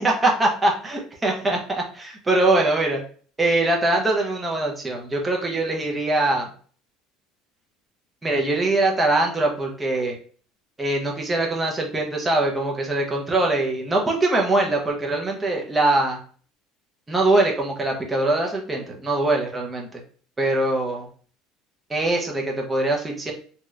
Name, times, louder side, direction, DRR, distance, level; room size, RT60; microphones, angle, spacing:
voice 1, 0.0-3.0 3.4-6.5 8.2-10.2 10.8-16.2 17.1-20.0 20.4-21.1 21.9-23.3, right 2 dB, 10° right, 0 dB, 0.5 m, -22 dB
3.1 x 2.8 x 2.3 m, 0.43 s
cardioid pair, 175°, 0 cm